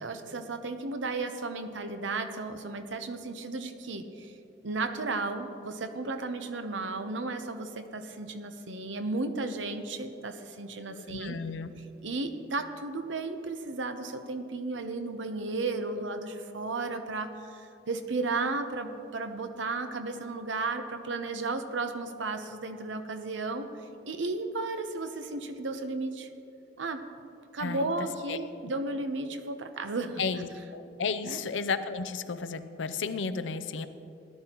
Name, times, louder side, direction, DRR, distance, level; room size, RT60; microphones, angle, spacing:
voice 1, 0.0-4.3 4.6-11.4 12.0-23.7 24.1-26.3 26.8-27.0 27.5-30.2 31.2-31.4, right 3 dB, 90° right, 8 dB, 0.8 m, -34 dB
voice 2, 11.0-11.7 27.6-27.9 28.3-28.4 30.2-33.9, left 5 dB, 85° left, 11 dB, 0.6 m, -33 dB
17.0 x 11.5 x 3.0 m, 2.7 s
head